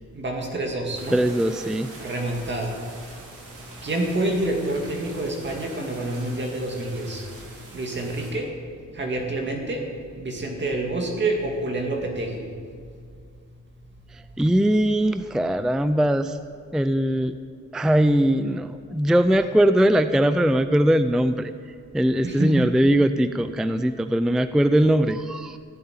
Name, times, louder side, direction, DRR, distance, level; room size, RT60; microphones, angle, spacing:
voice 1, 0.1-1.2 2.0-2.8 3.8-7.2 7.7-8.5 8.9-9.8 10.2-12.4 22.2-22.7, right 2 dB, 35° right, 1 dB, 2.3 m, -27 dB
sound 1, 0.9-8.3, right 2 dB, 85° right, 4.3 m, -44 dB
voice 2, 1.1-1.9 14.1-16.4 16.7-17.4 17.7-21.5 21.9-25.6, right 1 dB, ahead, 11 dB, 0.4 m, -21 dB
16.0 x 8.1 x 9.4 m, 2.2 s
wide cardioid pair, 130°, 30 cm